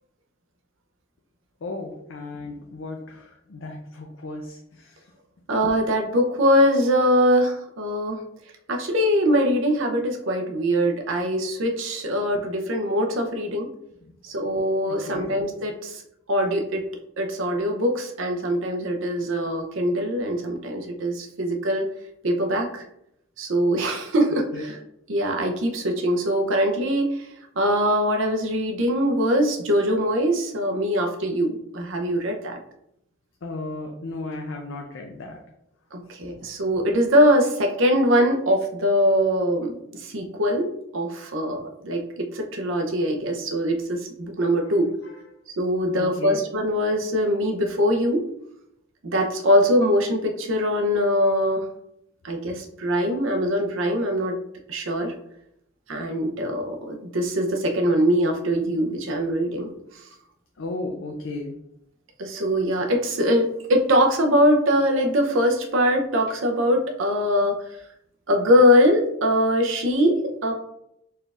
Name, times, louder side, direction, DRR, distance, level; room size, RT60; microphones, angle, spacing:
voice 1, 1.6-5.0 14.0-14.1 14.8-15.3 24.5-24.7 33.4-35.4 36.4-36.5 44.6-44.7 45.0-45.2 46.0-46.4 60.6-61.6, left 2 dB, 80° left, 1 dB, 0.5 m, -35 dB
voice 2, 5.5-8.2 8.7-13.7 14.2-16.0 16.3-16.9 17.2-21.9 22.2-22.8 23.4-24.8 25.1-27.3 27.6-32.6 35.9-44.9 45.6-48.2 49.0-51.6 52.2-54.3 54.7-55.1 55.9-59.7 62.2-67.6 68.3-70.5, equal, 80° right, 3 dB, 0.7 m, -22 dB
4.3 x 3.3 x 2.4 m, 0.77 s
head